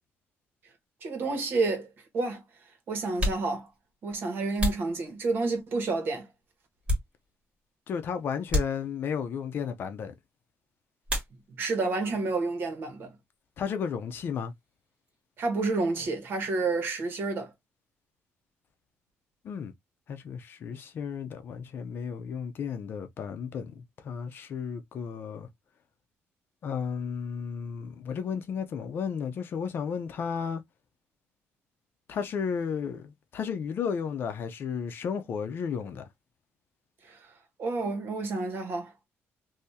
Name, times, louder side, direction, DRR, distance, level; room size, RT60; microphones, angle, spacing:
voice 1, 1.0-1.9 2.1-2.4 2.9-3.7 4.0-6.2 11.5-13.1 15.4-17.5 37.0-37.2 37.6-38.9, right 3 dB, 50° right, 1.4 m, -29 dB
sound 1, 3.1-5.7 6.2-7.6 7.9-8.0 8.5-9.3 11.0-11.8 12.1-12.8 13.0-15.2, left 1 dB, 25° right, 2.1 m, -34 dB
voice 2, 7.9-10.1 13.6-14.5 19.4-19.7 20.1-25.5 26.6-30.6 32.1-36.0, left 6 dB, 50° left, 0.6 m, -33 dB
3.5 x 2.8 x 2.8 m
cardioid pair, 150°, 5 cm